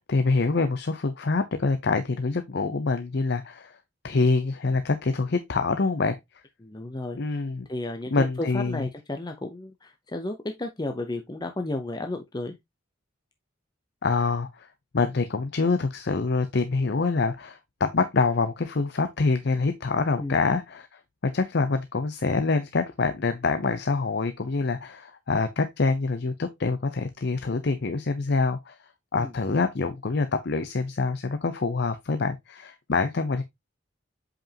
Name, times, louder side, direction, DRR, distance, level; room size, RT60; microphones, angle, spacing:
voice 1, 0.1-3.8 4.0-6.2 7.2-7.7 8.1-8.9 14.0-14.7 14.9-28.8 29.1-33.4, left 3 dB, 60° left, 0.6 m, -26 dB
voice 2, 6.6-7.4 7.7-12.6 20.2-20.4 29.2-29.3, left 2 dB, 20° left, 0.7 m, -33 dB
7.8 x 5.1 x 2.8 m
head